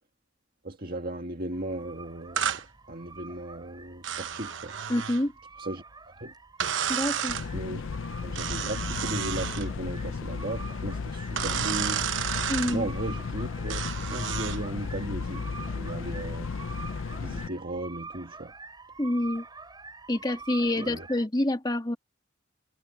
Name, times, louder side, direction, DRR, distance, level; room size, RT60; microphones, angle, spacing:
voice 1, 0.6-2.5 2.9-4.7 5.6-5.8 6.2-6.3 7.5-7.9 8.2-12.0 12.7-16.5 17.2-18.5 20.8-21.1, right 1 dB, 50° right, 1.7 m, -36 dB
sound 1, 1.5-21.3, right 4 dB, 20° right, 6.4 m, -47 dB
sound 2, 2.4-2.6 4.0-5.2 6.6-7.5 8.3-9.7 11.4-12.8 13.7-14.6, right 8 dB, 75° right, 0.9 m, -31 dB
voice 2, 4.9-5.3 6.9-7.4 12.5-12.9 19.0-19.4 20.1-22.0, left 1 dB, 20° left, 1.8 m, -27 dB
sound 3, 7.3-17.5, left 4 dB, 85° left, 0.5 m, -34 dB
head